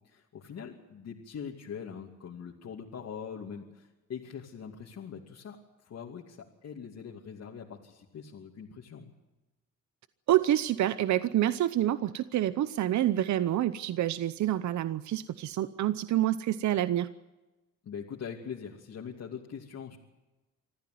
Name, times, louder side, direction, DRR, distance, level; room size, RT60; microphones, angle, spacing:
voice 1, 0.0-9.1 17.8-20.0, left 7 dB, 60° left, -2 dB, 2.7 m, -42 dB
voice 2, 10.3-17.1, right 12 dB, 70° right, 13 dB, 0.9 m, -27 dB
25.5 x 14.5 x 9.4 m, 1.1 s
cardioid pair, 90°, 30 cm